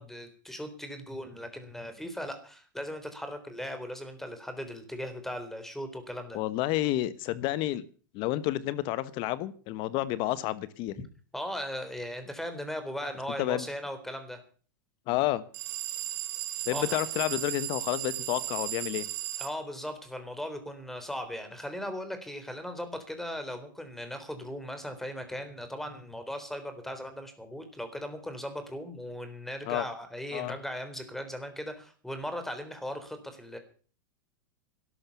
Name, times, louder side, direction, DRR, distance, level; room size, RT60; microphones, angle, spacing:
voice 1, 0.0-6.4 11.3-14.4 16.7-17.0 19.4-33.6, equal, 5° left, 9 dB, 3.8 m, -38 dB
voice 2, 6.3-7.8 8.1-11.1 13.4-13.6 15.1-15.4 16.7-19.1 29.7-29.9 30.3-30.5, left 15 dB, 50° left, 16 dB, 1.2 m, -30 dB
sound 1, 15.5-19.5, right 15 dB, 55° right, 2.1 m, -35 dB
13.0 x 12.0 x 7.2 m, 0.41 s
hypercardioid pair, 115°, 11 cm